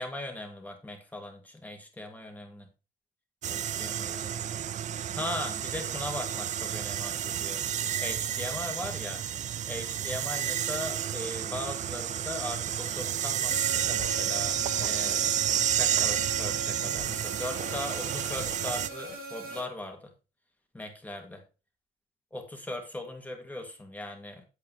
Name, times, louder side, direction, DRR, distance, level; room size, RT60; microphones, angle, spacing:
voice 1, 0.0-2.7 3.4-4.7 5.1-7.6 8.0-9.2 9.7-15.3 15.6-20.1 20.7-21.4 22.3-24.4, left 1 dB, 10° left, 3 dB, 2.6 m, -39 dB
sound 1, 3.4-18.9, right 10 dB, 45° right, 0.5 m, -31 dB
sound 2, 13.5-19.6, right 2 dB, 60° right, 3.7 m, -39 dB
8.6 x 8.1 x 3.6 m, 0.32 s
cardioid pair, 110°, 17 cm